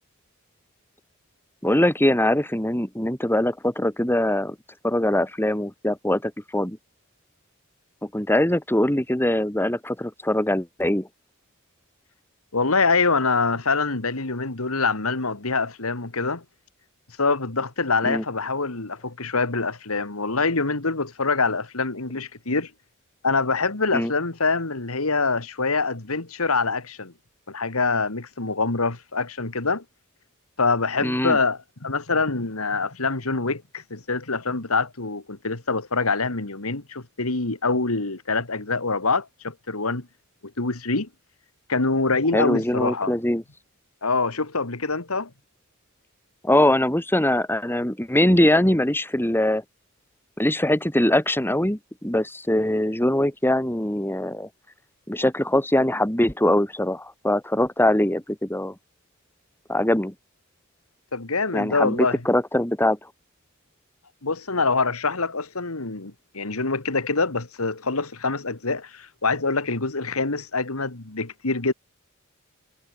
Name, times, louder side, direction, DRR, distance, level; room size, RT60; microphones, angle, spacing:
voice 1, 1.6-4.5 4.8-6.8 8.0-11.1 18.0-18.2 23.9-24.1 31.0-31.4 42.3-43.4 46.4-49.6 50.4-54.5 55.1-58.7 59.7-60.1 61.5-63.0, left 1 dB, 10° left, 3.2 m, -22 dB
voice 2, 12.5-16.4 17.2-22.7 23.2-27.1 27.5-29.8 30.6-40.1 40.6-41.1 41.7-43.1 44.0-45.3 61.1-62.2 64.2-71.7, left 3 dB, 80° left, 2.3 m, -25 dB
head